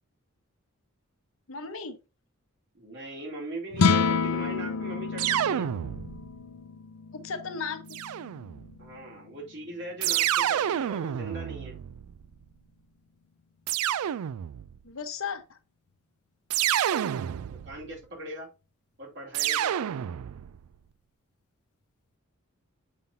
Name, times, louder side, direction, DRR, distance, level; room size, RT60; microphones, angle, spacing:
voice 1, 1.5-2.0 7.1-8.0 14.8-15.6, left 5 dB, 65° left, 1.0 m, -35 dB
voice 2, 2.7-5.7 8.8-11.8 17.5-18.5 19.0-19.9, right 1 dB, 55° right, 2.9 m, -40 dB
sound 1, 3.7-10.1, left 5 dB, 85° left, 0.6 m, -30 dB
sound 2, 5.2-6.4 7.9-8.8 10.0-12.3 13.7-14.8 16.5-17.9 19.3-20.6, right 11 dB, 80° right, 0.3 m, -29 dB
7.3 x 5.5 x 2.7 m
head